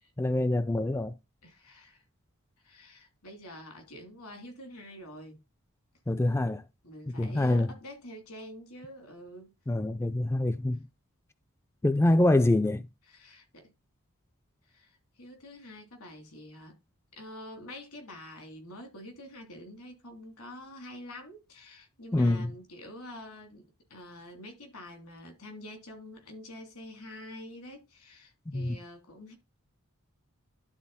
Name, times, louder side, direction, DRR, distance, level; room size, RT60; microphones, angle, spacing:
voice 1, 0.2-1.1 6.1-6.6 7.2-7.7 9.7-10.8 11.8-12.9 22.1-22.5 28.5-28.8, left 1 dB, 10° left, 0.3 m, -25 dB
voice 2, 1.4-2.0 2.6-5.4 6.8-9.5 13.1-13.7 14.7-16.8 17.1-29.3, left 1 dB, 85° left, 3.2 m, -47 dB
11.5 x 4.0 x 4.1 m
head